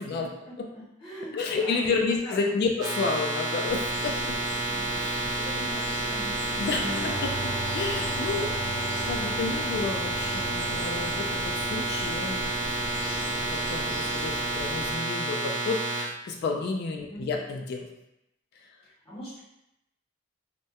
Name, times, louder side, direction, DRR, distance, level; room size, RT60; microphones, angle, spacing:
voice 1, 0.2-2.0 2.2-2.5 4.6-7.1 10.1-11.0 17.1-17.4 18.8-19.4, equal, 30° left, -11 dB, 0.8 m, -43 dB
voice 2, 1.3-4.3 5.0-5.3 6.6-7.3 7.7-12.5 13.4-17.9, left 4 dB, 55° left, 2 dB, 0.3 m, -31 dB
sound 1, 2.8-16.0, right 2 dB, 80° right, 0.6 m, -30 dB
sound 2, 3.7-14.9, left 1 dB, 80° left, 0.7 m, -39 dB
sound 3, 6.8-14.2, left 1 dB, 30° right, 0.4 m, -39 dB
2.2 x 2.1 x 2.8 m, 0.85 s
head